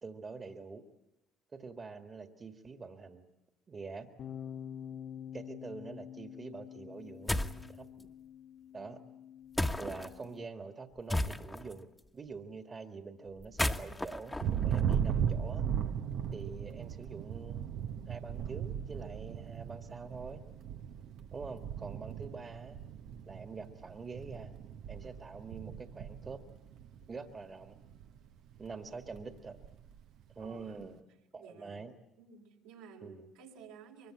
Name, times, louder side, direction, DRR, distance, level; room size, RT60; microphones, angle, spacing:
voice 1, 0.0-0.8 1.5-3.3 3.7-4.1 5.3-7.4 7.7-8.1 8.7-9.0 9.8-11.9 12.1-15.7 16.3-20.4 21.3-22.8 23.3-24.5 24.9-26.4 27.1-27.8 28.6-29.6 30.4-31.0 31.3-32.0 33.0-33.3, right 4 dB, 35° right, 6 dB, 1.9 m, -45 dB
sound 1, 4.2-10.4, left 9 dB, 60° left, 1.4 m, -47 dB
sound 2, 7.3-7.7 9.6-10.1 11.1-11.7 13.4-15.3, left 1 dB, 15° left, 1.4 m, -34 dB
Thunder, 14.4-27.3 27.6-28.2 28.5-30.0, right 8 dB, 70° right, 0.9 m, -37 dB
voice 2, 30.4-30.8 31.4-31.8 32.2-34.1, right 6 dB, 85° right, -1 dB, 4.7 m, -53 dB
23.5 x 23.0 x 8.7 m, 0.94 s
hypercardioid pair, 60°, 0 cm